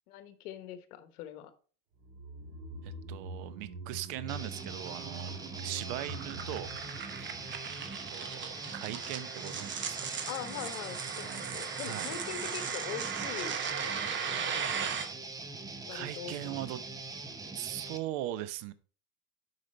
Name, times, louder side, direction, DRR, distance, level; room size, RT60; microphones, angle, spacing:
voice 1, 0.1-1.5 10.3-13.6 14.2-14.9 15.9-16.6, left 10 dB, 85° left, 11 dB, 1.2 m, -42 dB
sound 1, 2.0-8.4 8.7-8.8, right 3 dB, 75° right, 4.1 m, -44 dB
voice 2, 2.8-6.7 7.2-7.3 8.1-10.2 11.8-12.1 15.9-16.8 17.5-18.7, right 14 dB, 60° right, 15 dB, 0.8 m, -40 dB
Guitar, 4.3-18.0, right 3 dB, 10° right, 0.5 m, -43 dB
sound 2, 4.4-15.1, right 6 dB, 25° right, 1.0 m, -38 dB
8.1 x 5.0 x 4.2 m, 0.41 s
supercardioid pair, 140°, 43 cm